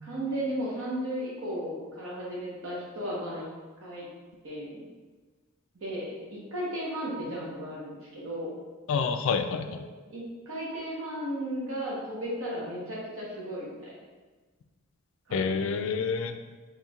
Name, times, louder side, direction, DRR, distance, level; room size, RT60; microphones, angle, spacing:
voice 1, 0.0-3.5 3.8-4.1 4.4-4.9 5.8-8.5 9.6-9.7 10.1-13.9 15.3-15.7, equal, 70° right, -6 dB, 1.0 m, -35 dB
voice 2, 8.9-9.8 15.3-16.4, left 5 dB, 65° left, 8 dB, 0.3 m, -28 dB
4.3 x 3.1 x 2.4 m, 1.3 s
head